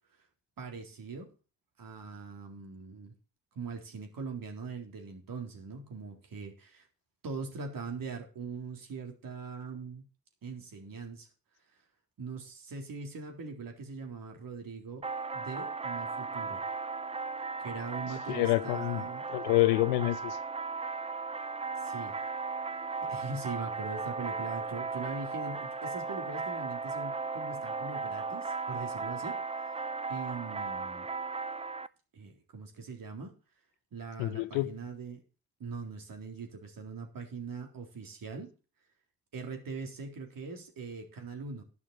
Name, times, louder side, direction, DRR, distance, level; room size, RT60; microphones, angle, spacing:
voice 1, 0.6-1.3 1.8-3.1 3.5-6.9 7.2-10.0 10.4-11.3 12.2-15.1 15.3-16.6 17.6-19.2 21.8-22.2 23.0-31.1 32.1-33.3 33.9-35.2 35.6-38.5 39.3-41.6, right 4 dB, 55° right, 3.8 m, -41 dB
sound 1, 15.0-31.9, right 4 dB, 15° right, 0.6 m, -36 dB
voice 2, 18.3-19.0 19.3-20.4 34.2-34.7, left 18 dB, 75° left, 1.0 m, -27 dB
11.5 x 11.0 x 4.4 m
hypercardioid pair, 45°, 41 cm